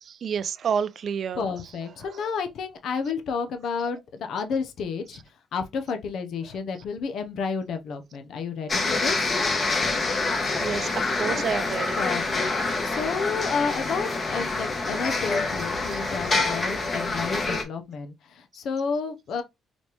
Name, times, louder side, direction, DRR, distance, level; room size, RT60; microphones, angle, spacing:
voice 1, 0.0-1.5 2.0-2.3 10.6-12.0 12.9-13.0 15.8-16.0 16.2-16.3, right 7 dB, 60° right, 0.4 m, -30 dB
voice 2, 1.4-5.2 5.5-9.3 12.0-19.4, left 5 dB, 70° left, 0.7 m, -31 dB
sound 1, 8.7-17.6, left 3 dB, 35° left, 1.2 m, -26 dB
4.1 x 3.0 x 3.3 m
cardioid pair, 90°, 0 cm